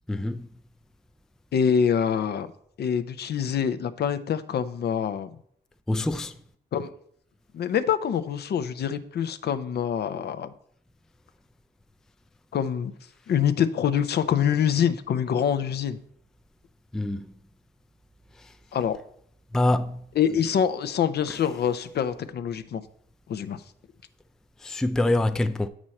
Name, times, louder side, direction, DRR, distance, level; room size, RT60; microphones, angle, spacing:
voice 1, 0.1-0.5 5.9-6.4 16.9-17.2 19.5-20.0 24.6-25.7, left 1 dB, 5° left, 0.4 m, -25 dB
voice 2, 1.5-2.5 2.8-5.3 6.7-6.9 7.5-10.5 12.5-12.9 13.3-16.0 18.7-19.0 20.2-22.8 23.3-23.6, left 8 dB, 55° left, 0.6 m, -25 dB
7.6 x 6.2 x 4.2 m
cardioid pair, 90°, 20 cm